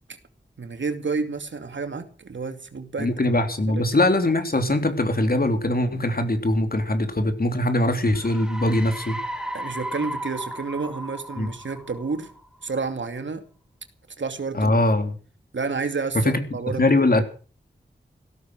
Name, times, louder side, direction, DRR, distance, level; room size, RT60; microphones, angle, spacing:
voice 1, 0.6-3.1 3.7-3.8 9.5-12.3 12.6-13.4 14.2-14.7 15.5-17.2, right 4 dB, 80° right, 8 dB, 2.6 m, -30 dB
voice 2, 3.0-9.2 11.4-11.5 14.5-15.1 16.1-17.2, left 1 dB, 55° left, 7 dB, 3.6 m, -22 dB
sound 1, 8.1-12.7, equal, 5° right, 5.1 m, -35 dB
16.5 x 14.0 x 6.2 m, 0.40 s
wide cardioid pair, 55°, 19 cm